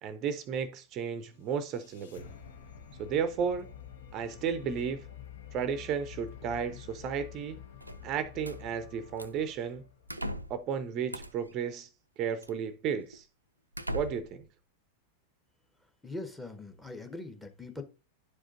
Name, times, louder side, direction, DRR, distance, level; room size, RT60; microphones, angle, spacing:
voice 1, 0.0-2.3 3.0-3.7 4.1-5.1 5.5-7.6 8.0-9.8 10.5-11.9 12.2-13.3 13.9-14.5, right 7 dB, 35° right, 0.5 m, -33 dB
sound 1, 1.1-10.3, left 8 dB, 60° left, 0.8 m, -49 dB
sound 2, 7.8-8.6 9.2-9.5 10.1-10.7 11.1-11.5 12.4-12.6 13.1-13.2 13.7-14.4, equal, 85° right, 0.4 m, -39 dB
voice 2, 16.0-17.8, left 2 dB, 5° left, 0.9 m, -41 dB
11.0 x 4.9 x 2.5 m
figure-of-eight pair, 90°, 0 cm